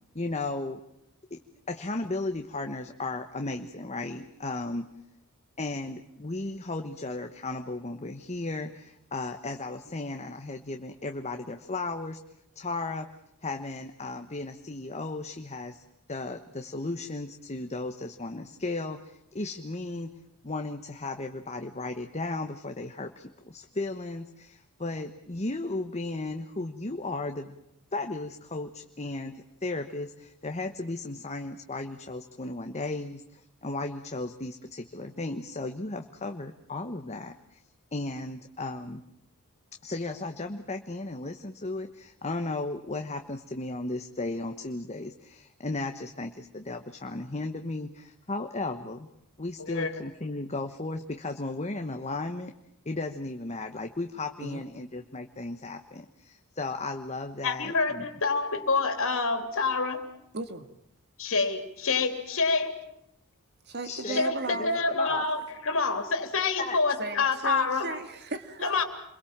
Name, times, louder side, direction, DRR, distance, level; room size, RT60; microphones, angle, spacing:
voice 1, 0.1-0.8 1.3-1.4 1.7-4.9 5.6-12.2 12.5-13.1 13.4-15.8 16.1-20.2 20.4-27.5 27.9-37.6 37.9-39.0 39.8-49.1 49.4-52.5 52.8-58.1 63.8-64.2 64.5-65.2 66.7-66.8, left 2 dB, 30° left, 6 dB, 1.2 m, -35 dB
voice 2, 49.6-49.9 57.4-60.0 61.2-62.8 64.1-67.9 68.6-68.8, left 4 dB, 65° left, 7 dB, 3.3 m, -27 dB
voice 3, 60.3-60.7 63.7-64.7 67.0-68.8, right 3 dB, 50° right, 9 dB, 2.0 m, -35 dB
28.0 x 22.5 x 7.4 m, 0.79 s
head